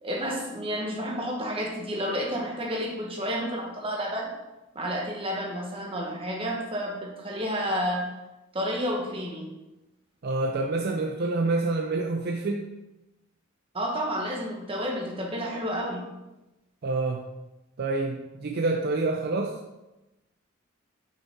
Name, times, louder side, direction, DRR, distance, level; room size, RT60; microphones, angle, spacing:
voice 1, 0.0-4.3 4.7-8.0 8.5-9.5 13.7-16.0, equal, 25° right, -1 dB, 1.2 m, -30 dB
voice 2, 10.2-12.6 16.8-17.2 17.8-19.6, right 3 dB, 50° right, 2 dB, 0.5 m, -27 dB
5.6 x 5.6 x 3.6 m, 1.0 s
head